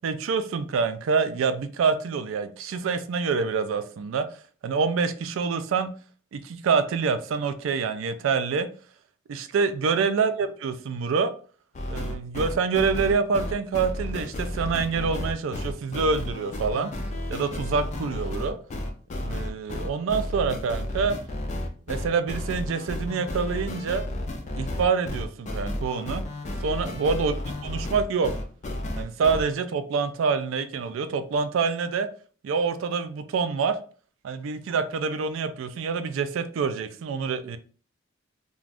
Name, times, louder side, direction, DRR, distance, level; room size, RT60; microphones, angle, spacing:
voice 1, 0.0-4.3 4.6-5.9 6.3-8.7 9.3-11.3 11.9-16.9 17.3-18.6 19.2-21.2 21.9-24.0 24.5-26.2 26.6-27.3 27.6-28.3 29.0-32.1 32.4-33.8 34.2-37.6, right 5 dB, 70° right, 0.3 m, -26 dB
sound 1, 11.7-29.4, left 1 dB, 35° left, 0.3 m, -32 dB
2.4 x 2.2 x 3.3 m
head